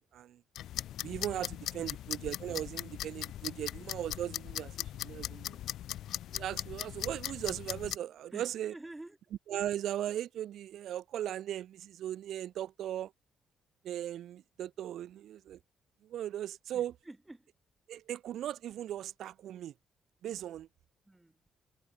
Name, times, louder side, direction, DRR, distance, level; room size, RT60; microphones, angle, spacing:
sound 1, 0.6-8.0, left 12 dB, 80° left, 0.4 m, -39 dB
voice 1, 1.0-5.6 6.3-8.7 9.5-13.1 13.8-15.6 16.0-16.9 17.9-19.7 20.2-20.7, right 11 dB, 75° right, 0.5 m, -38 dB
voice 2, 8.3-9.2 16.7-17.5 21.0-21.4, right 2 dB, 10° right, 3.9 m, -49 dB
cardioid pair, 90°, 0 cm